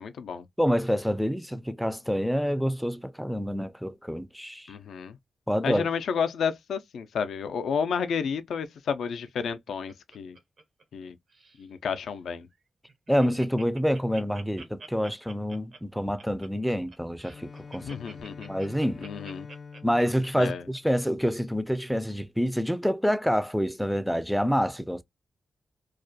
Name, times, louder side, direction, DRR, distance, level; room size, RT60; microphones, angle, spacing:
voice 1, 0.0-0.4 4.7-5.2 5.6-10.4 10.9-11.2 11.6-12.5 17.8-18.6 19.0-19.5 20.4-20.6, left 6 dB, 85° left, 0.3 m, -31 dB
voice 2, 0.6-4.7 5.5-5.8 13.1-18.0 18.5-19.1 19.8-25.0, equal, ahead, 0.3 m, -27 dB
Laughter, 9.3-11.0 11.3-11.7 12.1-12.2 12.5-12.6 12.9-21.3 21.8-21.9, right 3 dB, 65° right, 0.6 m, -48 dB
Bowed string instrument, 17.2-21.3, left 5 dB, 50° left, 0.6 m, -46 dB
2.3 x 2.1 x 2.5 m
cardioid pair, 65°, 0 cm